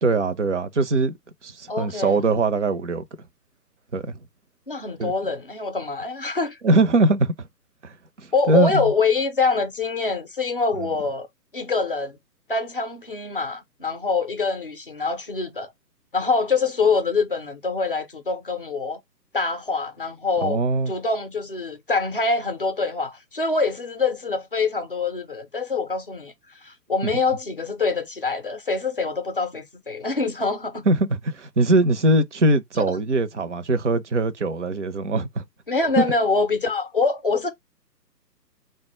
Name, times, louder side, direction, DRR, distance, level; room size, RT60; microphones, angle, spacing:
voice 1, 0.0-1.2 1.4-3.0 3.9-4.2 5.0-5.1 6.6-7.5 7.8-8.9 20.4-20.9 30.9-35.4 36.0-36.1, right 2 dB, 45° right, 0.5 m, -21 dB
voice 2, 1.7-2.2 4.7-6.6 8.3-11.3 11.5-12.2 12.5-15.7 16.1-19.0 19.3-20.6 20.9-26.3 26.6-30.9 32.8-32.9 35.7-37.5, left 4 dB, 35° left, 0.5 m, -25 dB
3.6 x 2.2 x 2.9 m
figure-of-eight pair, 135°, 50 cm